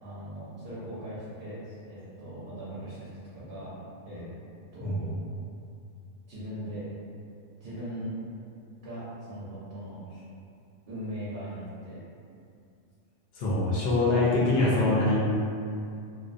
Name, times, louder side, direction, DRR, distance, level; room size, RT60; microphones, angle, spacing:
voice 1, 0.0-3.7 4.0-4.2 4.7-5.2 6.3-6.8 7.6-8.1 8.8-10.0 10.9-12.0 14.2-14.4, equal, 55° right, -10 dB, 0.7 m, -39 dB
voice 2, 13.3-15.2, left 2 dB, 65° left, -7 dB, 0.7 m, -24 dB
2.4 x 2.1 x 2.5 m, 2.5 s
omnidirectional pair, 1.3 m